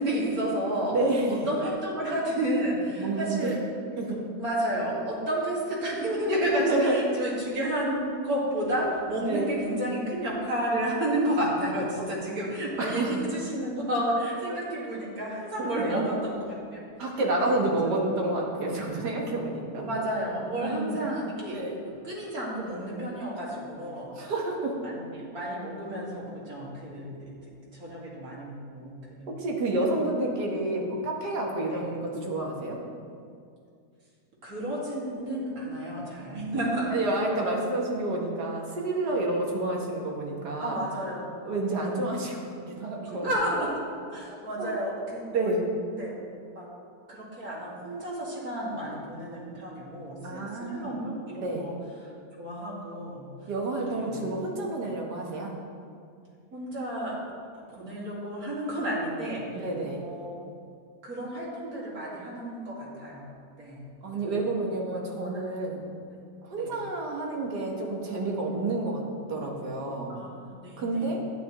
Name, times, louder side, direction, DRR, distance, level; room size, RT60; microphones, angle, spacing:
voice 1, 0.0-1.0 1.3-3.6 4.1-16.8 17.4-17.9 19.7-24.1 24.8-27.3 27.7-29.3 31.7-31.9 34.4-36.9 37.4-37.6 39.1-39.2 40.6-41.3 41.7-42.0 43.0-43.7 44.1-45.6 46.0-46.1 46.5-46.7 47.1-51.7 52.4-53.3 53.9-54.2 56.5-57.1 57.6-60.4 61.0-63.3 63.6-63.8 64.1-64.9 65.2-65.4 66.6-66.7 70.1-71.1, right 1 dB, 60° right, -5 dB, 2.6 m, -31 dB
voice 2, 0.9-1.5 3.0-3.6 4.0-4.2 6.5-7.0 9.3-9.5 12.8-13.2 15.6-16.0 17.0-19.9 20.6-21.0 21.5-21.8 24.2-24.7 29.3-32.8 36.3-36.7 36.9-40.8 41.4-43.3 44.6-44.8 45.3-45.7 50.2-51.0 51.4-51.7 53.5-55.6 59.5-60.0 64.0-65.8 66.4-69.0 69.3-70.1 70.8-71.2, right 2 dB, 80° right, -1 dB, 2.0 m, -29 dB
11.5 x 9.7 x 3.1 m, 2.3 s
omnidirectional pair, 1.7 m